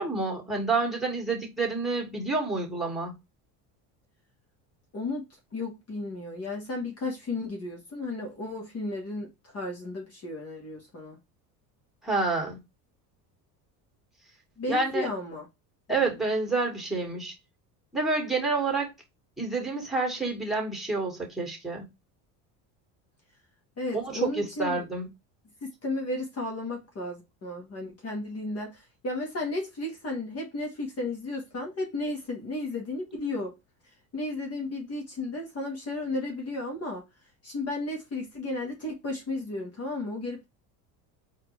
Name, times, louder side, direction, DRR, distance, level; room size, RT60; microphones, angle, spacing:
voice 1, 0.0-3.1 12.0-12.6 14.7-15.1 15.9-17.3 17.9-18.9 19.4-21.9 23.9-25.1, right 3 dB, ahead, 2.2 m, -28 dB
voice 2, 4.9-5.2 5.5-11.2 14.6-15.5 15.9-16.2 23.8-24.8 25.6-33.5 34.1-37.0 37.4-40.5, left 2 dB, 35° left, 1.4 m, -34 dB
4.2 x 2.9 x 3.3 m
supercardioid pair, 105°, 44 cm